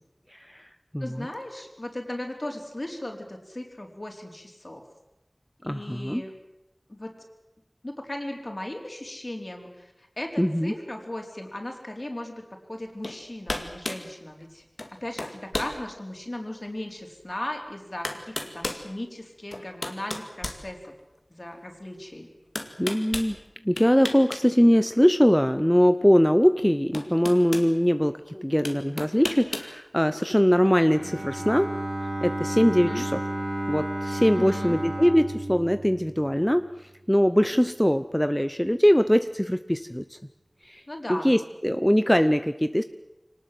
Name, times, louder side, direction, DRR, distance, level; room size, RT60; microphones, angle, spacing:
voice 1, 0.3-0.7 0.9-1.3 5.7-6.2 10.4-10.7 22.8-23.4 23.6-31.7 32.2-33.2 33.7-36.7 37.1-40.0 40.6-40.8 41.1-42.8, equal, 10° left, 10 dB, 0.8 m, -22 dB
voice 2, 1.0-4.8 5.6-6.3 6.9-7.1 7.8-12.4 12.7-14.6 15.0-20.9 21.3-22.3 32.8-33.1 34.4-34.8 40.9-41.3, left 1 dB, 50° left, 3 dB, 4.4 m, -37 dB
sound 1, 13.0-13.2 13.5-14.1 14.8-14.9 15.2-15.8 16.3-16.4 17.5-17.6 18.0-18.8 19.5-21.2 22.5-23.3 23.8-24.4 24.7-24.9 26.3-26.4 26.9-27.7 28.6-29.7, left 2 dB, 85° left, 2.2 m, -33 dB
Bowed string instrument, 30.9-36.8, right 1 dB, 65° right, 6.3 m, -32 dB
24.5 x 19.0 x 7.8 m, 0.96 s
wide cardioid pair, 40°, 0 cm